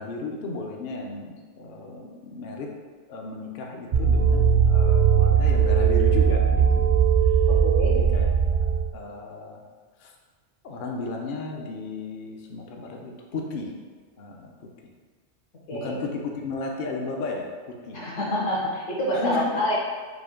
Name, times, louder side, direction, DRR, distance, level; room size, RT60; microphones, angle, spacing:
voice 1, 0.0-2.7 3.1-6.9 7.8-8.3 8.9-9.6 10.0-10.1 10.6-13.8 14.2-14.5 15.7-18.1 19.1-19.5, left 3 dB, 55° left, 1 dB, 0.6 m, -34 dB
sound 1, 3.9-8.9, right 6 dB, 60° right, 0.6 m, -19 dB
voice 2, 7.5-8.0 15.7-16.0 17.9-19.8, equal, 75° left, -5 dB, 1.5 m, -27 dB
5.0 x 2.2 x 4.8 m, 1.5 s
omnidirectional pair, 1.3 m